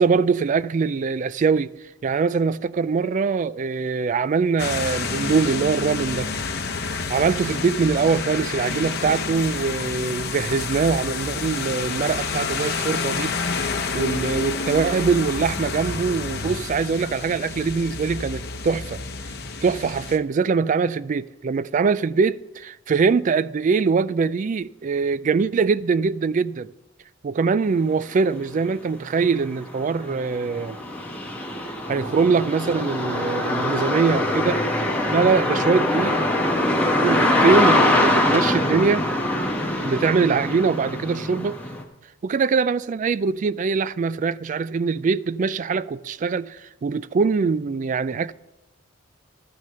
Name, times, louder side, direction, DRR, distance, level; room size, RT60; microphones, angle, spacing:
voice 1, 0.0-1.7 2.0-6.3 7.1-13.3 13.9-19.0 19.6-26.7 27.2-30.8 31.9-34.6 35.1-36.2 37.0-39.1 39.8-41.6 42.2-48.3, right 5 dB, 40° right, 0.3 m, -22 dB
sound 1, 4.6-20.2, left 4 dB, 50° left, 0.8 m, -29 dB
sound 2, 28.4-28.5 29.0-41.8, left 1 dB, 5° left, 1.3 m, -23 dB
13.0 x 6.3 x 6.7 m
head